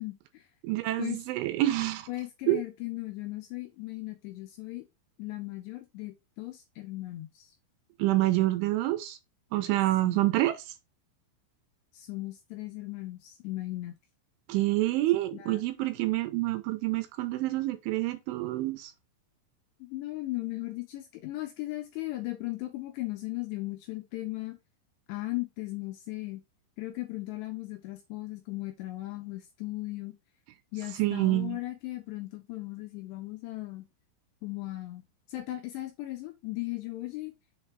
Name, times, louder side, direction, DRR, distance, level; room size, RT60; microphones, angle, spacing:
voice 1, 0.0-0.5 1.0-1.2 2.1-4.8 5.2-7.5 10.0-10.2 11.9-14.0 15.3-15.6 19.8-24.6 25.1-26.4 26.8-30.2 30.7-33.8 34.4-35.0 35.3-37.3, left 19 dB, 85° left, 2.6 m, -37 dB
voice 2, 0.6-2.1 2.5-2.6 8.0-9.2 9.5-10.6 14.5-18.9 31.0-31.6, right 16 dB, 85° right, 3.0 m, -27 dB
7.3 x 3.3 x 4.4 m
omnidirectional pair, 5.7 m